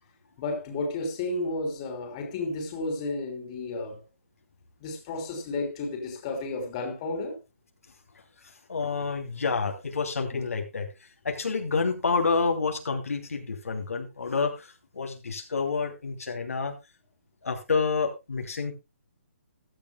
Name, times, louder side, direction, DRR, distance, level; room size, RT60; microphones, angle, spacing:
voice 1, 0.4-4.0 4.8-7.4 10.3-10.4, left 2 dB, 25° left, 3.2 m, -32 dB
voice 2, 8.4-16.8 17.4-18.7, left 4 dB, 85° left, 2.9 m, -29 dB
15.5 x 12.5 x 2.3 m
hypercardioid pair, 165°, 8 cm